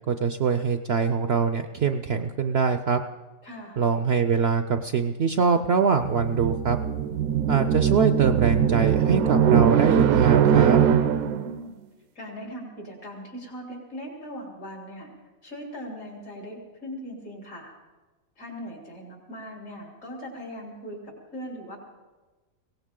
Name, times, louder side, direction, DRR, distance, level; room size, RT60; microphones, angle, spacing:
voice 1, 0.0-3.0 3.8-6.8 7.5-10.8, right 6 dB, 60° right, 8 dB, 0.7 m, -23 dB
voice 2, 3.4-3.8 11.1-11.8 12.2-15.1 15.4-17.7 18.4-21.8, equal, 70° left, -1 dB, 3.9 m, -39 dB
sound 1, 6.0-11.5, right 8 dB, 80° right, 1.1 m, -21 dB
22.0 x 17.5 x 3.8 m, 1.2 s
omnidirectional pair, 1.5 m